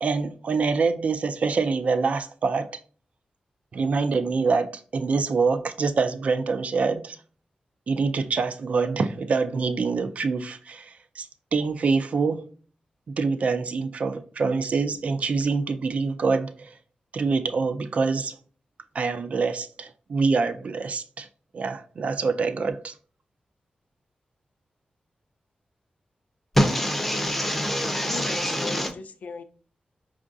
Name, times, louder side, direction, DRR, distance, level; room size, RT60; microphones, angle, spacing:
voice 1, 0.0-2.8 3.7-7.2 7.9-12.5 13.1-16.7 17.1-18.4 18.9-21.3 21.5-22.9, right 4 dB, 55° right, 0.3 m, -25 dB
voice 2, 26.5-28.9, equal, 5° left, 0.5 m, -25 dB
voice 3, 27.5-29.4, left 5 dB, 65° left, 0.4 m, -38 dB
5.3 x 2.4 x 2.5 m
wide cardioid pair, 170°, 3 cm